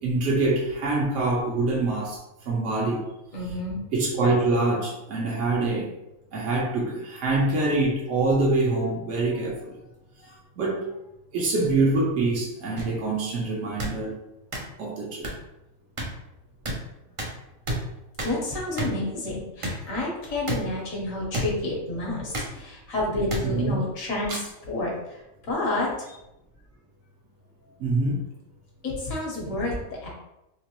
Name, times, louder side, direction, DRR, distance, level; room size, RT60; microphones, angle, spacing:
voice 1, 0.0-2.2 2.5-3.0 3.9-5.9 6.3-9.7 10.6-10.9 11.3-14.1 14.8-15.3 23.4-23.8 24.3-24.4 27.8-28.2, right 2 dB, 65° right, -4 dB, 1.2 m, -25 dB
voice 2, 3.3-3.8 10.2-10.4 18.2-24.4 24.7-24.9 25.4-25.9 28.8-30.1, left 2 dB, 80° left, -3 dB, 1.6 m, -29 dB
sound 1, 12.8-12.9 13.8-13.9 14.5-14.6 15.2-15.3 16.0-16.1 16.7-16.8 17.2-17.3 17.7-17.8 18.2-18.3 18.8-18.9 19.6-19.8 20.5-20.6 21.3-21.5 22.3-22.5 23.3-23.4 24.3-24.4, right 1 dB, 40° right, 0.5 m, -29 dB
3.7 x 3.0 x 3.0 m, 0.90 s
omnidirectional pair, 1.4 m